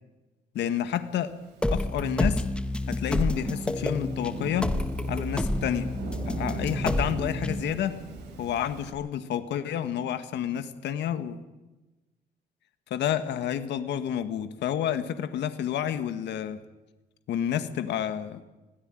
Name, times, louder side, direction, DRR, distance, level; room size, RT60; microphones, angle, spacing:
voice 1, 0.5-1.3 1.7-2.4 2.9-4.7 5.1-5.9 6.3-8.0 8.4-11.4 12.9-16.6 17.3-18.4, left 10 dB, 85° left, 10 dB, 1.7 m, -29 dB
Thunderstorm / Rain, 1.2-8.9, right 4 dB, 85° right, 6.5 m, -40 dB
sound 1, 1.6-7.6, left 1 dB, 5° left, 1.2 m, -29 dB
23.0 x 17.0 x 9.1 m, 1.1 s
cardioid pair, 115°, 18 cm